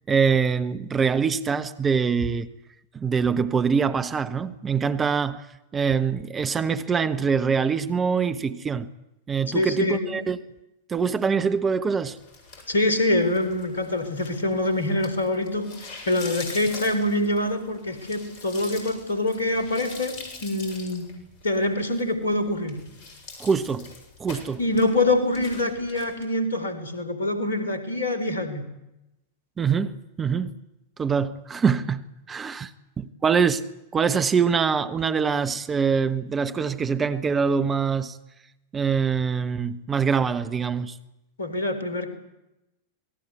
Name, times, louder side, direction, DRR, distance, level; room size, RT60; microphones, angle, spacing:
voice 1, 0.1-2.5 2.9-5.4 5.7-8.9 9.3-10.4 10.9-12.2 23.4-23.9 24.2-24.6 29.6-30.5 31.0-32.0 32.3-32.7 33.0-33.6 33.9-38.2 38.7-41.0, right 6 dB, 20° right, 1.3 m, -24 dB
voice 2, 9.5-10.2 12.7-20.2 20.4-21.1 21.4-22.8 24.6-28.6 41.4-42.1, left 1 dB, 70° left, 4.5 m, -25 dB
sound 1, 12.2-26.2, left 3 dB, 45° left, 8.0 m, -44 dB
27.5 x 20.0 x 8.2 m
figure-of-eight pair, 90°, 0 cm